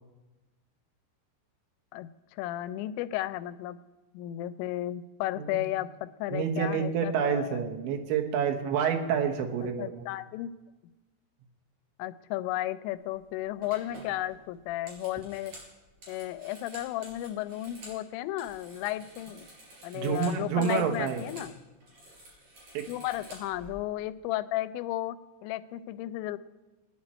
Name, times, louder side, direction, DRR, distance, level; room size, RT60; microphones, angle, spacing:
voice 1, 1.9-3.8 4.1-5.9 6.2-7.6 9.8-10.5 12.0-15.5 16.1-19.5 19.8-21.5 22.9-26.4, left 14 dB, 85° left, 12 dB, 2.8 m, -34 dB
voice 2, 6.3-10.0 19.9-21.2 22.7-22.8, right 7 dB, 80° right, 4 dB, 3.4 m, -28 dB
sound 1, 13.0-13.2 13.6-18.0 18.3-21.5 21.8-23.7, right 1 dB, 40° right, 5.4 m, -50 dB
20.5 x 9.8 x 4.3 m, 1.1 s
omnidirectional pair, 5.2 m